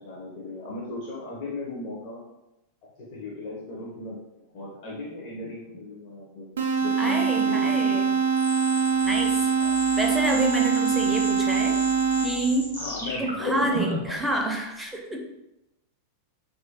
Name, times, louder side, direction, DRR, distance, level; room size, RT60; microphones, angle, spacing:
voice 1, 0.0-2.2 3.0-6.5 6.8-8.2 9.6-9.8 12.8-14.2, left 2 dB, 45° left, -4 dB, 0.7 m, -37 dB
sound 1, 6.6-12.6, right 6 dB, 65° right, 0.4 m, -23 dB
voice 2, 7.0-8.1 9.0-9.5 10.0-11.8 12.2-12.7 13.2-15.2, right 1 dB, 5° right, 0 dB, 0.5 m, -28 dB
sound 2, 8.4-14.2, left 1 dB, 85° left, 1.1 m, -34 dB
3.0 x 2.4 x 2.8 m, 0.93 s
figure-of-eight pair, 90°, 0 cm